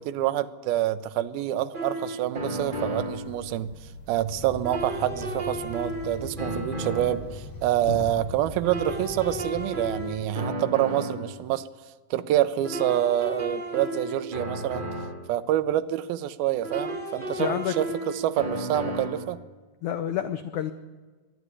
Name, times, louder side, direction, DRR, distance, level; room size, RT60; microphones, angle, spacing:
voice 1, 0.0-3.7 4.1-11.7 12.1-14.9 15.3-17.9 18.2-19.4, right 13 dB, 75° right, 10 dB, 2.6 m, -27 dB
sound 1, 1.7-3.3 4.6-7.3 8.6-11.3 12.6-15.3 16.6-19.3, right 1 dB, 25° right, 1.1 m, -33 dB
sound 2, 2.6-9.0, left 3 dB, 30° left, 5.5 m, -42 dB
sound 3, 4.2-10.1, left 1 dB, 5° left, 2.9 m, -41 dB
voice 2, 17.4-17.7 19.8-20.7, left 10 dB, 90° left, 10 dB, 1.6 m, -28 dB
22.0 x 12.5 x 9.8 m, 1.3 s
omnidirectional pair, 4.5 m